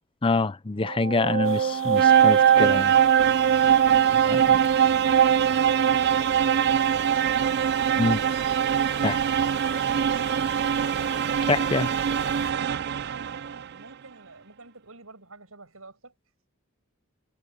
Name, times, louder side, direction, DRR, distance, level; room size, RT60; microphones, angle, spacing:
voice 1, 0.2-2.9 8.0-8.2 9.0-9.2 11.5-11.9, left 3 dB, 25° left, 0.5 m, -25 dB
sound 1, 0.8-13.6, right 8 dB, 50° right, 0.3 m, -22 dB
sound 2, 1.4-12.5, left 7 dB, 65° left, 1.6 m, -44 dB
voice 2, 4.0-8.4 13.0-16.1, right 3 dB, 75° right, 6.2 m, -47 dB
head